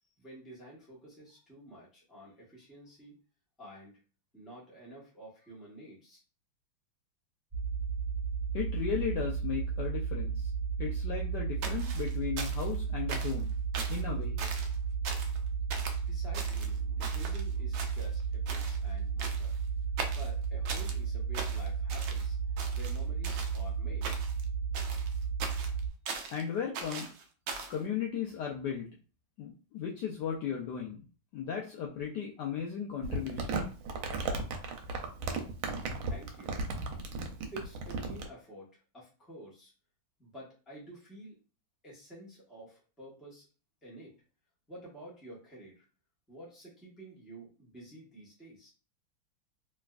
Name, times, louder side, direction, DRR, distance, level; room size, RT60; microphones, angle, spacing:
voice 1, 0.2-3.2 3.6-4.0 4.3-6.2 16.0-19.6 20.1-24.1 36.0-36.5 37.5-39.7 40.2-41.4 41.8-43.5 43.8-44.1 44.7-45.9 46.3-48.7, right 1 dB, ahead, -6 dB, 0.6 m, -50 dB
sound 1, 7.5-25.9, right 6 dB, 35° right, 0.9 m, -33 dB
voice 2, 8.5-10.5 10.8-13.5 13.9-14.4 26.3-27.1 27.7-28.9 29.4-31.1 31.3-33.6, left 8 dB, 75° left, -1 dB, 1.0 m, -36 dB
sound 2, 11.6-12.8 13.1-13.4 13.7-14.0 14.4-14.8 15.1-15.4 15.7-16.0 16.3-17.4 17.7-18.2 18.5-18.8 19.2-19.6 20.0-21.0 21.3-22.3 22.6-23.6 24.0-24.4 24.7-26.4 26.7-27.8, right 5 dB, 70° right, 1.0 m, -40 dB
Crumpling crinkling, 33.0-38.3, right 3 dB, 90° right, 1.5 m, -35 dB
3.4 x 3.0 x 2.3 m, 0.37 s
omnidirectional pair, 2.3 m